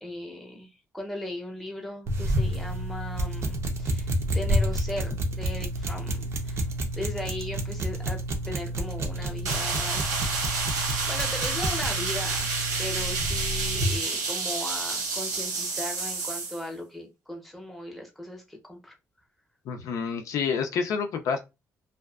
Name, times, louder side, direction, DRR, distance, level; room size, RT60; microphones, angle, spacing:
voice 1, 0.0-6.6 6.9-8.2 8.5-10.4 10.8-12.5 12.8-18.9, left 1 dB, ahead, 0.6 m, -38 dB
sound 1, 2.1-14.0, right 1 dB, 50° right, 0.5 m, -29 dB
sound 2, 9.4-16.6, right 4 dB, 75° right, 1.0 m, -30 dB
voice 2, 19.7-21.4, left 6 dB, 70° left, 0.4 m, -28 dB
2.5 x 2.2 x 2.3 m
cardioid pair, 140°, 6 cm